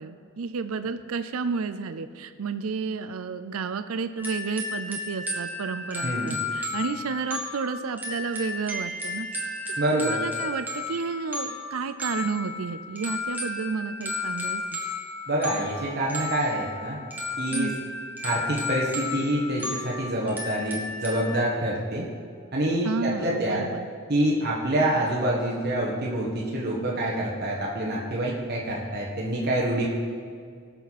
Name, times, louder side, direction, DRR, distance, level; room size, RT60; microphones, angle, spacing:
voice 1, 0.0-9.3 9.9-14.8 17.5-17.8 22.8-23.9, right 5 dB, 75° right, 11 dB, 0.5 m, -31 dB
sound 1, 4.2-21.3, left 2 dB, 10° right, 1.4 m, -33 dB
voice 2, 6.0-6.4 9.8-10.2 15.3-17.0 17.4-17.7 18.2-22.1 22.5-23.6 24.1-29.9, right 1 dB, 50° right, -4 dB, 1.5 m, -26 dB
18.5 x 6.8 x 4.2 m, 2.2 s
head